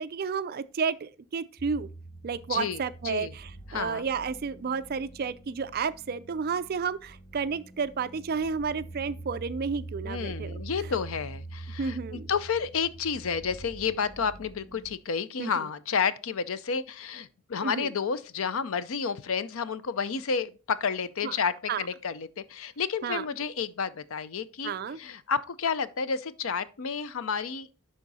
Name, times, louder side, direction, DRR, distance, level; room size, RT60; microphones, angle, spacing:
voice 1, 0.0-1.9 2.2-10.6 11.8-12.3 15.4-15.5 17.6-17.9 21.2-21.3 21.7-21.9 23.0-23.2 24.6-25.0, right 5 dB, 45° right, 0.4 m, -31 dB
sound 1, 1.6-15.0, right 2 dB, 20° left, 1.0 m, -44 dB
voice 2, 2.5-3.3 3.7-4.1 10.0-24.7 25.0-27.7, left 6 dB, 65° left, 0.5 m, -31 dB
10.5 x 3.7 x 4.1 m
head